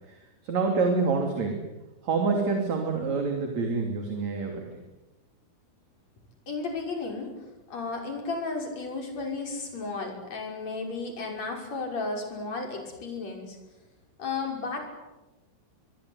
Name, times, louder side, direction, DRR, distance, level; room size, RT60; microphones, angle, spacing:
voice 1, 0.1-1.6 2.0-4.7, right 4 dB, 40° right, 3 dB, 3.7 m, -27 dB
voice 2, 6.5-7.3 7.7-13.6 14.2-14.8, left 3 dB, 35° left, 2 dB, 6.7 m, -33 dB
25.5 x 22.5 x 9.8 m, 1.0 s
omnidirectional pair, 5.6 m